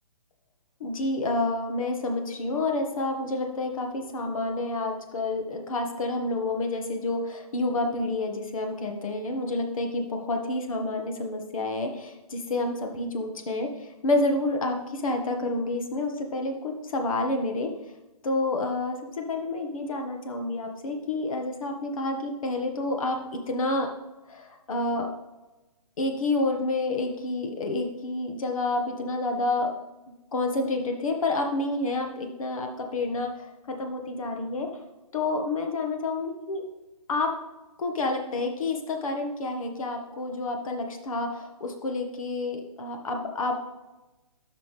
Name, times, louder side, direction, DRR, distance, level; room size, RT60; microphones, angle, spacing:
voice 1, 0.8-17.7 18.2-23.9 24.3-25.1 26.0-29.7 30.3-34.7 35.1-36.6 37.1-37.3 37.8-43.6, left 2 dB, 60° left, 4 dB, 1.6 m, -29 dB
12.0 x 5.8 x 3.3 m, 1.1 s
hypercardioid pair, 150°, 20 cm